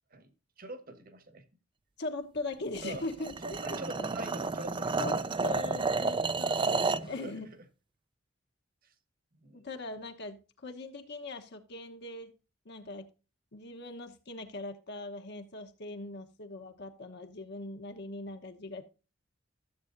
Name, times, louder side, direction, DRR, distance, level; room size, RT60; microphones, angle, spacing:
voice 1, 0.6-1.5 2.8-3.0 3.4-5.2 7.1-7.4 8.8-8.9 9.4-9.7, right 2 dB, 45° right, 1.4 m, -44 dB
voice 2, 2.0-3.8 5.0-7.5 9.5-12.3 12.6-13.1 13.5-18.8, left 2 dB, 55° left, 1.1 m, -40 dB
sound 1, 2.7-7.1, right 4 dB, 25° right, 0.5 m, -31 dB
14.0 x 7.7 x 2.6 m
head